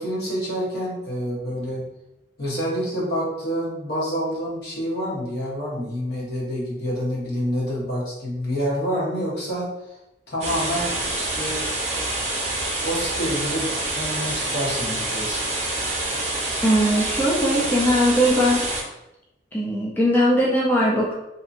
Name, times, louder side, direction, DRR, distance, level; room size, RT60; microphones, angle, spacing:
voice 1, 0.0-1.8 2.4-10.0 10.3-11.7 12.8-13.6 13.9-15.8, equal, 60° left, -5 dB, 1.0 m, -28 dB
sound 1, 10.4-18.8, right 2 dB, 40° right, 0.6 m, -27 dB
voice 2, 16.6-18.7 19.5-21.1, equal, 10° left, -5 dB, 0.4 m, -20 dB
2.8 x 2.5 x 2.5 m, 0.89 s
head